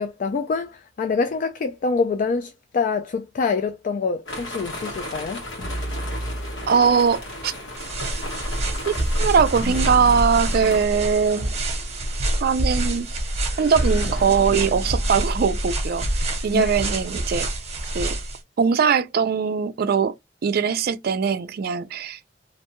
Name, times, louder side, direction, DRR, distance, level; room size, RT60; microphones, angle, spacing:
voice 1, 0.0-5.4 16.5-16.7, left 4 dB, 45° left, 0.3 m, -25 dB
sound 1, 4.3-10.8, left 1 dB, 85° left, 1.2 m, -35 dB
sound 2, 5.6-16.9, equal, 70° left, 1.0 m, -33 dB
voice 2, 6.7-7.5 8.9-11.6 12.4-13.2 13.6-16.1 16.4-17.5 17.9-18.2 18.6-20.1 20.4-22.2, right 6 dB, 55° right, 0.3 m, -21 dB
sound 3, 7.8-18.4, right 1 dB, 35° right, 0.8 m, -27 dB
2.5 x 2.2 x 2.9 m
head